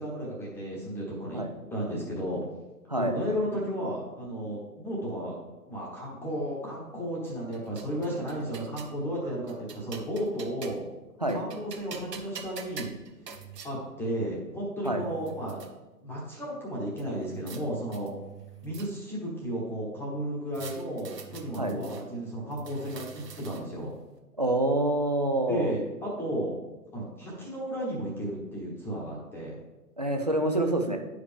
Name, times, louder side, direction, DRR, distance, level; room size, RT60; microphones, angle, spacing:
voice 1, 0.0-1.4 1.7-2.4 3.0-5.4 5.7-10.9 11.3-13.0 13.6-15.6 16.0-18.1 18.6-24.0 25.5-26.5 26.9-29.6, equal, 5° left, -4 dB, 1.0 m, -33 dB
sound 1, 7.3-9.0 9.5-10.9 11.3-13.7 14.5-14.6 14.9-15.7 17.0-17.6 17.9-19.2 20.5-22.0 22.5-23.8, right 6 dB, 80° right, 1.5 m, -45 dB
voice 2, 24.4-25.7 30.0-31.0, right 1 dB, 30° right, 4 dB, 0.3 m, -26 dB
10.5 x 4.9 x 3.4 m, 1.1 s
hypercardioid pair, 145°, 48 cm